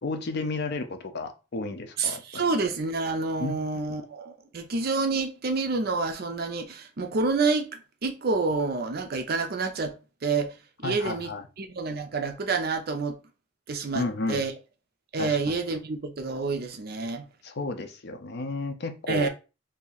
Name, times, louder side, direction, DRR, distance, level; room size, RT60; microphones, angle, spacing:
voice 1, 0.0-2.4 3.4-3.6 10.8-11.4 13.9-14.4 15.2-15.4 15.7-15.8 17.4-19.3, left 2 dB, 55° left, 0.5 m, -32 dB
voice 2, 2.0-7.7 8.0-10.0 10.2-10.6 10.8-11.3 11.6-13.2 13.7-14.5 15.1-17.3 19.1-19.3, right 4 dB, 50° right, 0.5 m, -28 dB
2.8 x 2.6 x 3.9 m
head